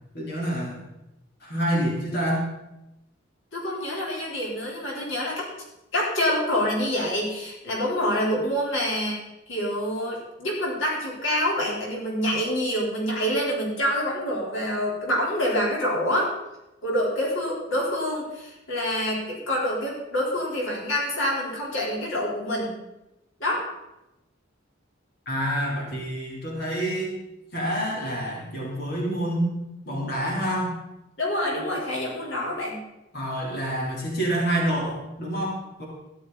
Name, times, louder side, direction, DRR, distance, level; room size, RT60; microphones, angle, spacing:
voice 1, 0.1-0.8 1.4-2.5 25.3-27.1 27.5-29.5 29.9-30.7 33.1-35.9, right 1 dB, 55° left, -4 dB, 3.6 m, -27 dB
voice 2, 3.5-5.4 5.9-9.2 9.5-16.3 16.8-22.8 23.4-23.6 31.2-32.8, equal, 85° left, -3 dB, 4.0 m, -26 dB
14.0 x 11.0 x 4.1 m, 0.94 s
head